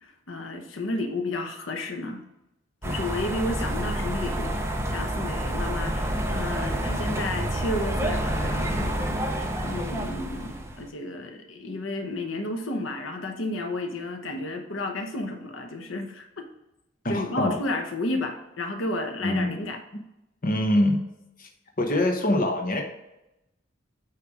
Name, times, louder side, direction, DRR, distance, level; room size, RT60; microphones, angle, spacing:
voice 1, 0.0-2.2 2.8-16.4 17.1-19.8, left 2 dB, 85° left, 4 dB, 1.0 m, -32 dB
sound 1, 2.8-10.9, right 1 dB, 15° right, 0.7 m, -28 dB
voice 2, 17.0-17.6 19.2-19.6 20.4-21.0 21.4-21.5 21.8-22.8, left 1 dB, 45° left, 2 dB, 1.0 m, -24 dB
8.6 x 3.4 x 4.9 m, 0.90 s
head